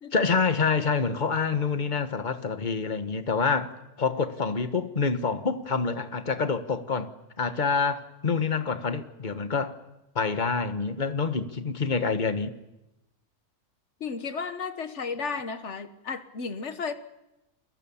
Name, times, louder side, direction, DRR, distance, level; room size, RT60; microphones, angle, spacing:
voice 1, 0.1-7.1 7.4-9.7 10.1-12.5, left 5 dB, 30° left, 1.5 m, -27 dB
voice 2, 14.0-16.9, left 5 dB, 50° left, 1.6 m, -33 dB
29.5 x 23.0 x 7.3 m
omnidirectional pair, 1.6 m